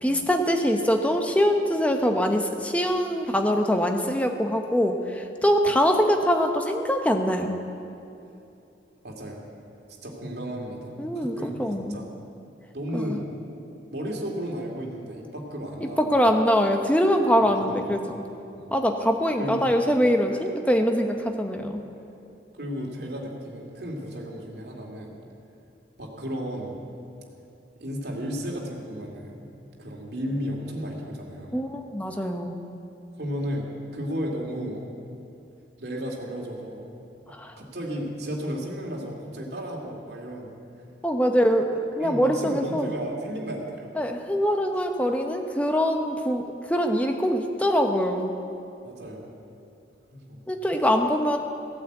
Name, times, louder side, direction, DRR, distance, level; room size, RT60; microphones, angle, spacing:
voice 1, 0.0-7.5 11.0-12.0 12.9-13.2 15.8-18.2 18.7-21.8 31.5-32.6 37.3-37.5 41.0-42.9 44.0-48.3 50.5-51.4, equal, 10° left, 4 dB, 0.9 m, -23 dB
voice 2, 9.0-9.4 10.0-11.6 11.9-12.1 12.7-13.3 13.9-16.3 17.4-18.7 19.4-19.7 22.5-25.2 26.0-26.8 27.8-29.5 29.8-31.6 33.2-34.9 35.8-36.9 37.2-40.5 42.0-43.9 48.8-49.3 50.1-50.4, equal, 65° right, -1 dB, 2.5 m, -34 dB
16.0 x 9.1 x 8.0 m, 2.8 s
head